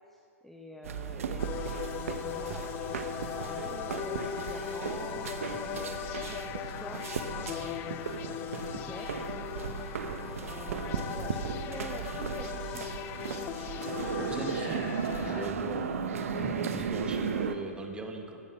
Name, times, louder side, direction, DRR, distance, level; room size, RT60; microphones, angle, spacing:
voice 1, 0.1-1.9 2.2-9.3 9.8-13.0 15.2-15.4 16.3-16.9, left 1 dB, 5° left, 0 dB, 0.7 m, -46 dB
sound 1, 0.8-17.5, right 6 dB, 65° right, 0.9 m, -36 dB
sound 2, 1.4-15.5, left 11 dB, 25° left, 0.4 m, -39 dB
voice 2, 14.2-14.9 15.2-15.8 16.8-18.4, right 3 dB, 10° right, 3 dB, 1.3 m, -39 dB
16.0 x 7.0 x 6.5 m, 2.6 s
figure-of-eight pair, 115°, 8 cm